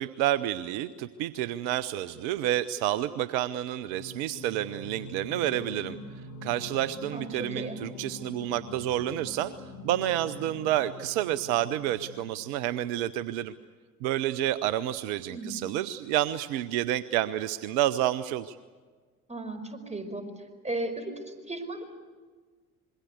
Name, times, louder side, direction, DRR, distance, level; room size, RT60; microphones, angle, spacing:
voice 1, 0.0-6.0 6.4-9.5 9.8-13.5 14.0-18.6, right 13 dB, 65° right, 16 dB, 0.8 m, -29 dB
Singing, 3.8-12.8, left 2 dB, 70° left, 2.2 m, -44 dB
voice 2, 7.1-7.8 15.3-15.6 19.3-20.3 20.6-21.8, right 2 dB, 15° right, 7 dB, 5.1 m, -36 dB
26.5 x 22.0 x 8.2 m, 1.5 s
figure-of-eight pair, 50°, 44 cm